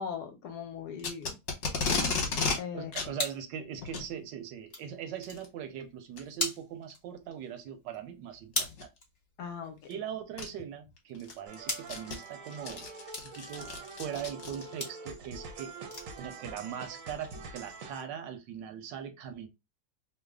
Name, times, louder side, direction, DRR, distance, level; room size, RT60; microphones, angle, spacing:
voice 1, 0.0-1.4 2.0-2.9 9.4-9.9, left 6 dB, 70° left, 1.1 m, -40 dB
Packing tape duct tape, 1.0-2.6 2.9-3.1 3.8-4.1 5.2-5.5 6.2-6.3 6.9-7.0 8.5-8.8 9.9-10.0 10.4-10.5 11.0-14.9, left 4 dB, 55° left, 1.1 m, -33 dB
sound 1, 1.5-12.7 13.1-13.4 13.7-14.1 14.8-15.0 15.4-15.5 15.8-16.2 16.5-16.8 17.2-17.3 17.6-17.7, left 2 dB, 30° left, 0.7 m, -41 dB
voice 2, 2.7-8.9 9.9-12.8 13.4-13.7 14.0-15.7 16.2-19.5, right 9 dB, 80° right, 1.2 m, -40 dB
sound 2, 11.5-18.0, right 4 dB, 60° right, 0.9 m, -45 dB
3.2 x 2.1 x 3.5 m
omnidirectional pair, 2.0 m